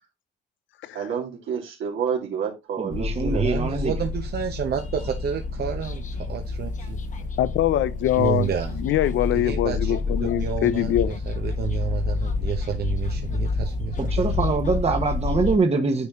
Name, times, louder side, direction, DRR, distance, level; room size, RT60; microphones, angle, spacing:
voice 1, 0.9-3.5, right 7 dB, 80° right, 2.2 m, -29 dB
voice 2, 2.8-3.9 14.0-16.1, right 4 dB, 30° right, 1.2 m, -24 dB
sound 1, 2.9-15.6, left 3 dB, 40° left, 1.2 m, -29 dB
voice 3, 3.3-7.0 8.2-8.8 9.3-10.9 11.3-14.3, right 8 dB, 55° right, 1.0 m, -30 dB
voice 4, 7.4-8.5 8.8-11.2, left 12 dB, 75° left, 0.6 m, -23 dB
9.6 x 4.3 x 3.6 m
cardioid pair, 90°, 20 cm